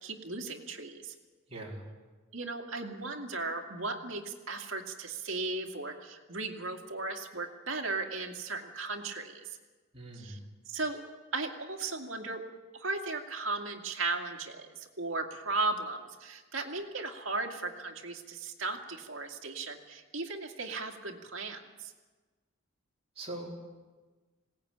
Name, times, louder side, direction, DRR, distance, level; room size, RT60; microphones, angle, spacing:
voice 1, 0.0-1.1 2.3-9.6 10.2-10.4 10.7-11.0 11.3-12.4 12.7-21.9, right 3 dB, 70° right, 2 dB, 2.4 m, -36 dB
voice 2, 1.5-1.8 9.9-10.4 23.2-23.5, right 2 dB, 30° right, -3 dB, 4.4 m, -41 dB
21.0 x 18.0 x 8.9 m, 1.3 s
head